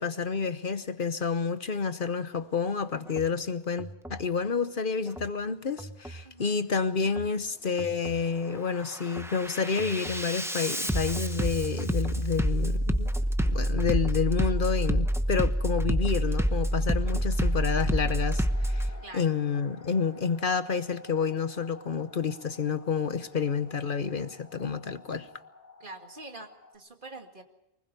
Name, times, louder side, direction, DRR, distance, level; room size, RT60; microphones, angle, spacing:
voice 1, 0.0-13.1 13.4-18.9 19.1-25.3, left 5 dB, 55° left, 1.1 m, -29 dB
Bass drum, 3.1-3.3 3.8-4.3 5.1-5.3 5.8-6.3 7.1-7.3 7.8-8.3 8.7-18.9, equal, 5° right, 0.9 m, -28 dB
voice 2, 6.2-6.6 19.0-19.4 25.8-27.4, right 2 dB, 50° right, 2.2 m, -45 dB
sound 1, 16.3-26.8, left 3 dB, 15° left, 3.0 m, -52 dB
24.0 x 20.5 x 6.9 m
omnidirectional pair, 1.1 m